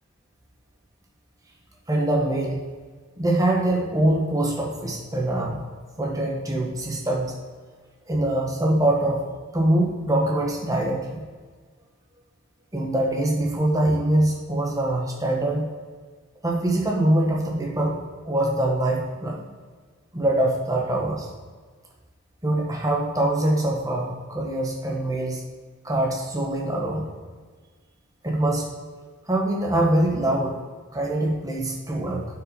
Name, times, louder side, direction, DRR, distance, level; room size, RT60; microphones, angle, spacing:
voice 1, 1.9-2.6 3.2-5.6 6.0-7.3 8.1-9.3 9.5-11.2 12.7-15.7 16.4-18.0 18.2-19.5 20.1-21.3 22.4-25.4 25.8-27.1 28.2-28.7 29.3-30.6 30.9-32.3, right 1 dB, 15° right, -1 dB, 1.4 m, -23 dB
8.4 x 6.0 x 5.2 m, 1.5 s
head